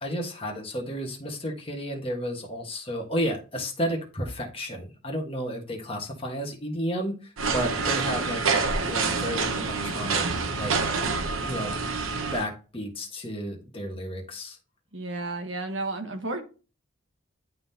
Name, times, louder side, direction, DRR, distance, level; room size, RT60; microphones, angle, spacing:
voice 1, 0.0-8.4 8.8-10.3 10.5-10.7 11.4-11.7 12.3-14.6, equal, 25° left, 1 dB, 1.4 m, -32 dB
sound 1, 7.4-12.4, right 4 dB, 80° right, 0.9 m, -27 dB
voice 2, 14.9-16.4, right 2 dB, 65° right, 5 dB, 1.3 m, -32 dB
10.5 x 3.7 x 2.8 m, 0.34 s
head